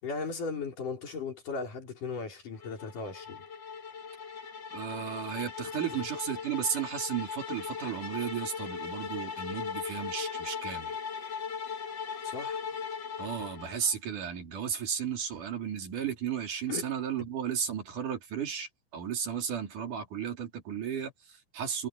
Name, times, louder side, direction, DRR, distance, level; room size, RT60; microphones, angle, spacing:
voice 1, 0.0-3.5 12.2-12.6 16.7-16.9, left 4 dB, 75° left, 6.6 m, -37 dB
sound 1, 2.6-13.9, left 6 dB, 40° left, 1.9 m, -39 dB
voice 2, 4.7-10.9 13.2-21.9, right 8 dB, 70° right, 5.0 m, -34 dB
omnidirectional pair, 3.7 m